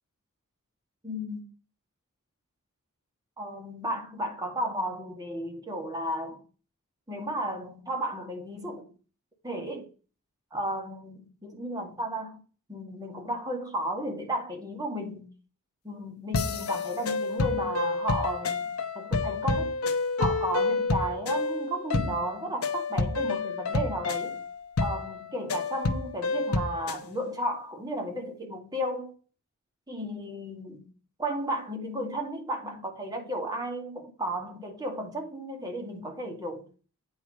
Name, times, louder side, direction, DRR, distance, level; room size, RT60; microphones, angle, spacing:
voice 1, 1.0-1.4 3.4-6.4 7.1-8.9 9.4-9.9 10.5-12.4 12.7-15.3 15.8-19.7 20.2-24.4 24.8-29.1 29.9-30.9 31.2-36.7, right 1 dB, 20° right, 2.0 m, -34 dB
sound 1, 16.3-27.0, left 3 dB, 75° left, 0.8 m, -29 dB
8.6 x 4.7 x 4.9 m
head